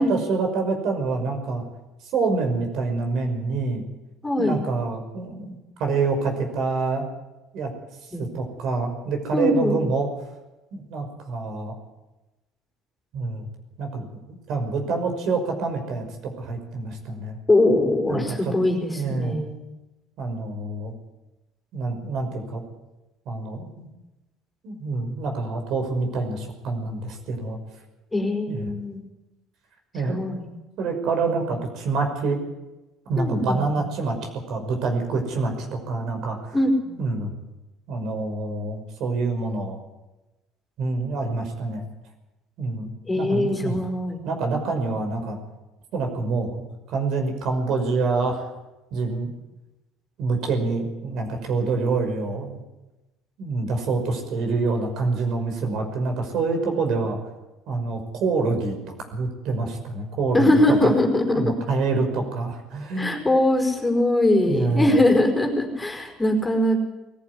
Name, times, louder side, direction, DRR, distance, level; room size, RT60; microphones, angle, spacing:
voice 1, 0.0-1.6 2.0-3.8 4.4-7.1 7.5-7.7 8.2-10.1 10.7-11.7 13.1-13.4 13.8-17.4 18.0-18.5 18.8-19.4 20.2-20.9 21.7-22.6 23.3-23.9 24.6-27.6 28.5-28.7 29.9-30.2 30.8-32.4 33.1-34.2 34.5-36.6 37.0-37.3 37.9-39.8 40.8-41.8 42.6-42.9 43.1-43.8 44.2-45.4 45.9-46.6 46.9-48.5 48.9-49.3 50.2-52.6 53.4-57.2 57.7-58.8 59.1-60.9 61.3-63.1 64.5-65.0, right 3 dB, 60° right, 4 dB, 5.8 m, -26 dB
voice 2, 4.2-4.6 8.1-8.2 9.3-9.8 17.5-19.6 28.1-29.0 30.0-30.4 33.2-33.6 36.5-37.0 43.1-44.2 60.3-61.5 63.0-66.8, left 1 dB, 10° left, 2 dB, 4.8 m, -21 dB
20.5 x 14.5 x 9.9 m, 1.0 s
cardioid pair, 115°, 0 cm